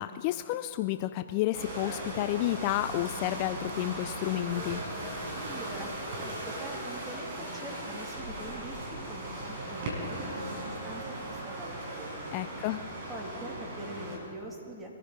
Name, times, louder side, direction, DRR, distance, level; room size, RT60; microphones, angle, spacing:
voice 1, 0.0-4.8 12.3-12.8, left 15 dB, 35° left, 11 dB, 0.4 m, -31 dB
sound 1, 1.5-14.2, right 1 dB, 45° right, 5.3 m, -38 dB
voice 2, 5.3-12.3 13.1-14.9, right 1 dB, 15° right, -1 dB, 2.7 m, -44 dB
23.5 x 14.5 x 4.0 m, 2.5 s
hypercardioid pair, 140°, 0 cm